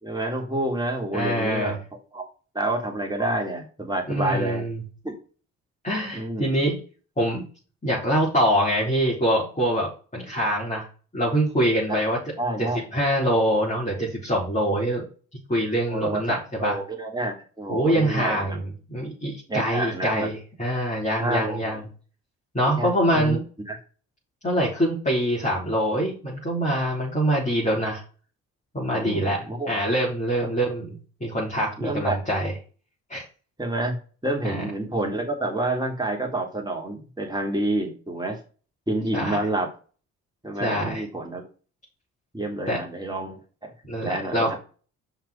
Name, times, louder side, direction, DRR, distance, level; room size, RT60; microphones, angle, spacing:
voice 1, 0.0-1.8 2.1-2.2 2.5-4.6 5.0-5.1 6.1-6.6 11.9-12.0 12.4-12.8 15.9-18.6 19.5-20.3 21.2-21.8 22.8-23.4 23.7-23.8 29.0-29.7 31.8-32.2 33.6-34.0 34.2-38.4 38.9-39.7 40.4-41.5 42.3-43.7 44.0-44.6, right 1 dB, 10° right, 1 dB, 3.3 m, -28 dB
voice 2, 1.1-1.8 4.1-4.8 5.8-6.8 7.2-7.5 7.8-10.9 11.1-12.2 12.6-15.0 15.5-16.8 17.7-21.9 22.5-23.4 24.4-28.0 28.7-29.4 29.7-31.0 31.2-32.6 33.1-33.2 34.4-34.6 39.1-39.4 40.6-41.0 42.7-42.8 43.9-44.5, equal, 20° left, -5 dB, 4.1 m, -24 dB
5.7 x 5.6 x 6.6 m, 0.36 s
figure-of-eight pair, 40°, 40 cm